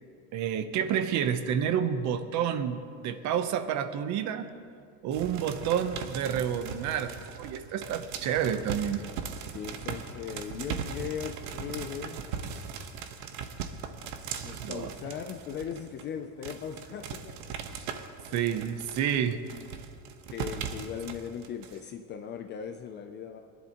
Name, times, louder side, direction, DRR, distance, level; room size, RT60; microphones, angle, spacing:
voice 1, 0.3-4.5 5.0-9.1 14.6-14.9 18.3-19.4, right 8 dB, 40° right, 10 dB, 0.7 m, -29 dB
sound 1, 5.1-16.0 16.4-21.8, right 6 dB, 85° right, 1.1 m, -39 dB
voice 2, 9.5-12.3 14.4-17.4 18.3-18.6 20.3-23.4, left 8 dB, 30° left, 6 dB, 0.3 m, -38 dB
22.5 x 11.0 x 2.9 m, 2.3 s
cardioid pair, 155°, 42 cm